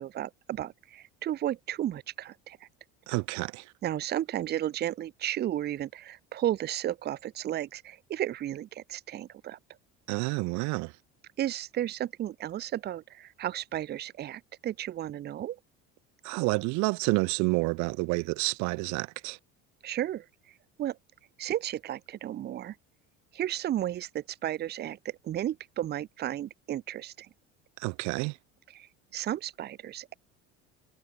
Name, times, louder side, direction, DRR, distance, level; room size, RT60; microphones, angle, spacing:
voice 1, 0.0-2.7 3.8-9.6 11.4-15.6 19.8-21.0 21.4-22.8 23.3-27.3 28.7-30.1, right 12 dB, 35° right, 1.1 m, -33 dB
voice 2, 3.1-3.6 10.1-10.9 16.2-19.4 27.8-28.3, right 28 dB, 75° right, 1.4 m, -29 dB
cardioid pair, 160°, 29 cm